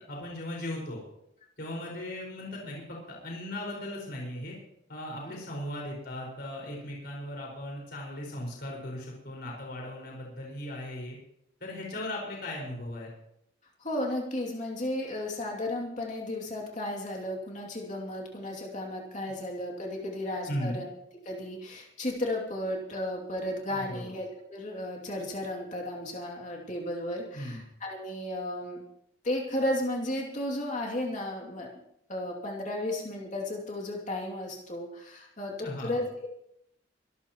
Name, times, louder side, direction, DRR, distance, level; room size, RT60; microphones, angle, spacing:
voice 1, 0.1-1.0 1.6-4.6 4.9-11.2 11.6-13.1 20.5-20.8 23.8-24.1 27.3-27.6 35.6-36.0, left 1 dB, 55° left, -2 dB, 5.3 m, -37 dB
voice 2, 13.8-20.9 21.2-28.8 29.2-31.7 32.1-36.3, left 1 dB, 40° left, -2 dB, 2.7 m, -34 dB
25.0 x 13.5 x 3.1 m, 0.77 s
head